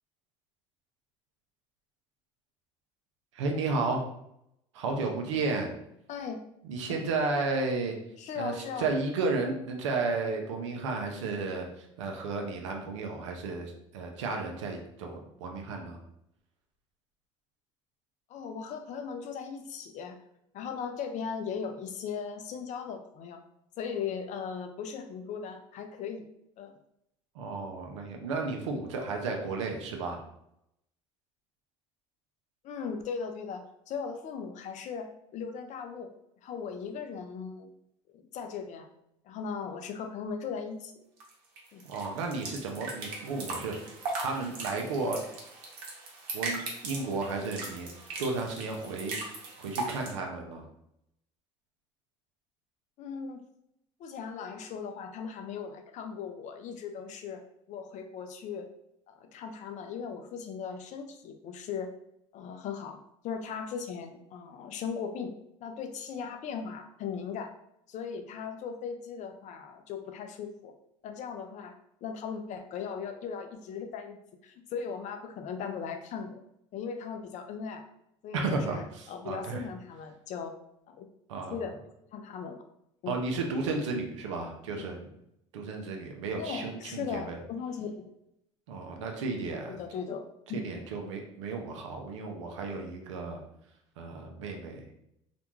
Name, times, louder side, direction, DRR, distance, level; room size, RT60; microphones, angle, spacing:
voice 1, 3.3-4.0 4.7-5.7 6.7-8.0 8.3-16.0 27.4-30.2 41.8-43.9 44.2-45.2 46.3-50.7 78.3-79.7 81.3-81.6 83.1-85.0 85.5-87.4 88.7-89.8 90.5-93.4 94.0-94.8, right 3 dB, 90° right, 2 dB, 0.5 m, -33 dB
voice 2, 6.1-6.4 8.2-8.9 18.3-20.2 20.5-23.4 23.8-26.3 26.6-26.7 32.6-36.1 36.4-37.7 38.1-38.9 39.2-41.0 41.7-41.8 53.0-53.4 54.0-57.4 57.7-58.7 59.1-61.9 62.3-65.3 65.6-67.5 67.9-70.7 71.0-74.2 74.4-76.4 76.7-77.9 78.2-80.5 80.9-81.0 81.5-81.7 82.1-82.6 83.0-83.2 84.7-84.9 86.4-88.0 89.7-90.8, left 6 dB, 55° left, 6 dB, 0.5 m, -38 dB
sound 1, 41.2-50.1, right 3 dB, 70° right, 0.8 m, -39 dB
2.5 x 2.1 x 3.0 m, 0.78 s
hypercardioid pair, 70°, 15 cm